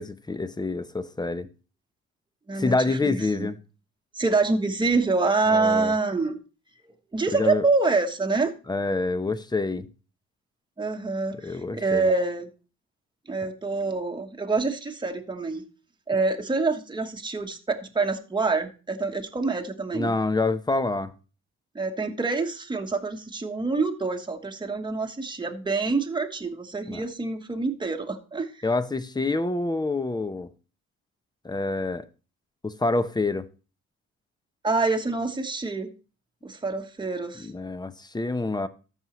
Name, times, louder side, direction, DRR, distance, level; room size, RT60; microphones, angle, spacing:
voice 1, 0.0-1.5 2.5-3.6 5.5-5.9 7.3-7.6 8.7-9.9 11.4-12.1 19.9-21.1 26.9-27.1 28.6-30.5 31.4-32.1 32.6-33.5 37.4-38.7, left 3 dB, 15° left, 0.7 m, -27 dB
voice 2, 2.5-3.5 4.1-6.4 7.1-8.5 10.8-12.5 13.3-15.6 16.1-20.1 21.7-28.6 34.6-35.9 36.4-37.5, right 3 dB, 15° right, 1.2 m, -26 dB
13.5 x 5.6 x 3.1 m
cardioid pair, 90°, 30 cm